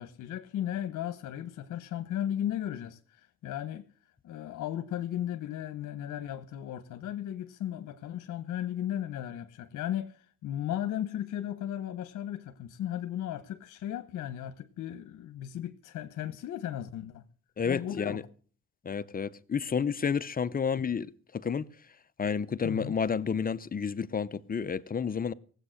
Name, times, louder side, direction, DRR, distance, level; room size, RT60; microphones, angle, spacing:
voice 1, 0.0-3.9 4.2-17.3 17.6-18.2 22.6-22.9, left 11 dB, 75° left, 1.1 m, -36 dB
voice 2, 17.6-18.2 18.8-21.7 22.2-25.3, left 6 dB, 30° left, 0.7 m, -30 dB
18.0 x 8.1 x 6.4 m
cardioid pair, 90°, 30 cm